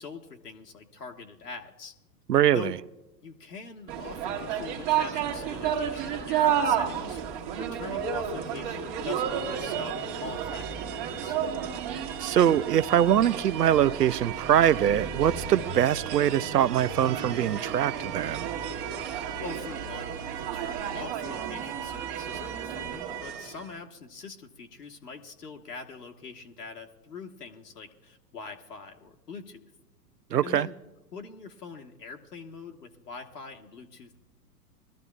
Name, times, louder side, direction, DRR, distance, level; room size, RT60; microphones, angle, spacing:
voice 1, 0.0-1.9 2.5-2.8 3.2-7.2 7.6-11.4 19.4-29.7 30.4-30.7 31.1-34.2, left 5 dB, 70° left, 1.4 m, -43 dB
voice 2, 2.3-2.7 12.2-18.5 30.3-30.7, right 10 dB, 70° right, 0.6 m, -23 dB
sound 1, 3.9-23.7, right 8 dB, 35° right, 1.5 m, -32 dB
22.0 x 13.5 x 2.4 m
figure-of-eight pair, 110°, 50 cm